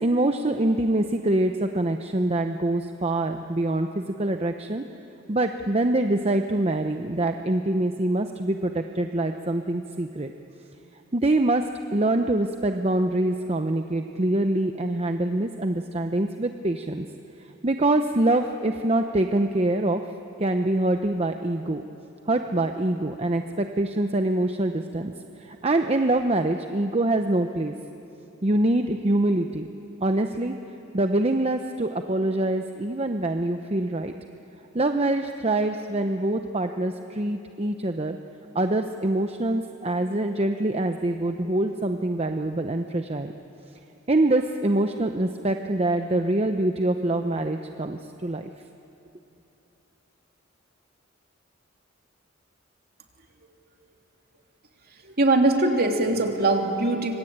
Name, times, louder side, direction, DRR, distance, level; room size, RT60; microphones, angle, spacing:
voice 1, 0.0-4.8 5.3-10.3 11.1-11.6 11.9-17.1 17.6-20.0 20.4-21.8 22.3-25.1 25.4-27.7 28.4-29.7 30.0-30.5 30.9-34.1 34.7-38.2 38.5-43.3 44.1-48.5, right 1 dB, 30° right, 6 dB, 0.8 m, -24 dB
voice 2, 55.2-57.1, right 2 dB, 50° right, 2 dB, 2.9 m, -21 dB
26.5 x 25.5 x 8.9 m, 2.9 s
head